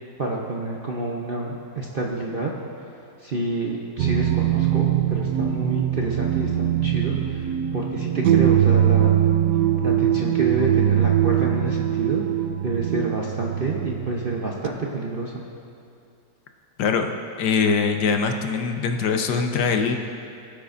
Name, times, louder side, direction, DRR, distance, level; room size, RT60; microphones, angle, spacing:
voice 1, 0.2-2.5 3.2-9.2 9.8-12.2 12.6-15.4, right 2 dB, 45° right, -2 dB, 0.7 m, -28 dB
sound 1, 4.0-14.7, right 11 dB, 75° right, 1.2 m, -22 dB
voice 2, 16.8-17.1 17.4-20.0, left 5 dB, 75° left, 5 dB, 1.3 m, -22 dB
21.0 x 8.4 x 2.6 m, 2.5 s
omnidirectional pair, 1.9 m